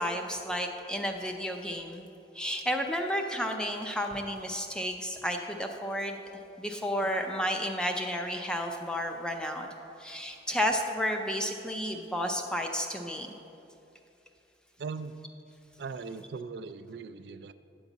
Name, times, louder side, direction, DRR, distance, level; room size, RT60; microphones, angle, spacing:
voice 1, 0.0-2.1 2.3-6.2 6.6-9.7 10.0-13.3, equal, 5° left, 3 dB, 0.4 m, -32 dB
voice 2, 14.8-15.1 15.8-17.5, right 4 dB, 65° right, 12 dB, 0.3 m, -39 dB
9.1 x 3.9 x 7.1 m, 2.8 s
head